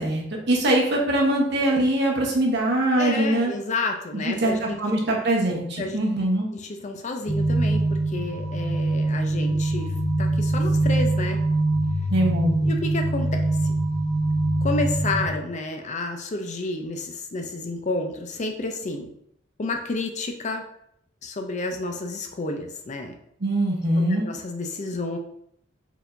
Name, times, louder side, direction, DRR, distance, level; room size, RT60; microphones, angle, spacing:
voice 1, 0.0-3.5 4.1-6.5 12.1-12.9 23.4-24.3, right 1 dB, 60° right, -1 dB, 1.1 m, -23 dB
voice 2, 3.0-4.8 5.8-6.0 6.5-9.9 10.2-11.4 12.7-13.7 14.6-19.1 19.6-20.7 21.2-23.2 24.1-25.2, left 2 dB, 35° left, 4 dB, 0.5 m, -30 dB
sound 1, 7.3-15.3, right 2 dB, 10° left, 1.2 m, -23 dB
4.7 x 3.6 x 2.6 m, 0.71 s
head